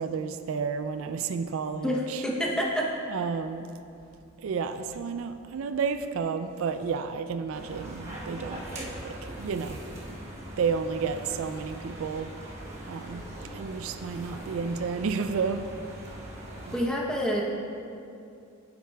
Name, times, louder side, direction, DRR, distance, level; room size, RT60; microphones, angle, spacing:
voice 1, 0.0-2.2 3.1-3.7 4.4-8.6 9.0-9.8 10.6-12.3 12.9-13.3 13.5-15.7, right 5 dB, 70° right, 9 dB, 0.3 m, -31 dB
voice 2, 1.8-2.9 16.7-17.4, equal, 5° left, -2 dB, 0.7 m, -27 dB
sound 1, 7.5-16.8, right 1 dB, 30° right, 1.1 m, -41 dB
9.4 x 7.9 x 2.3 m, 2.5 s
head